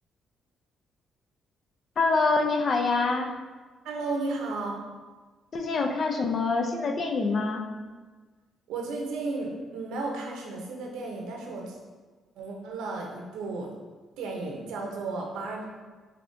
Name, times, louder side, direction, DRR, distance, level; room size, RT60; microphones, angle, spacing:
voice 1, 2.0-3.3 5.5-7.7, left 3 dB, 50° left, 4 dB, 0.5 m, -25 dB
voice 2, 3.8-4.8 8.7-11.8 12.4-13.7 14.2-15.7, right 3 dB, 90° right, 0 dB, 0.8 m, -33 dB
5.2 x 2.8 x 2.6 m, 1.3 s
cardioid pair, 90°, 0 cm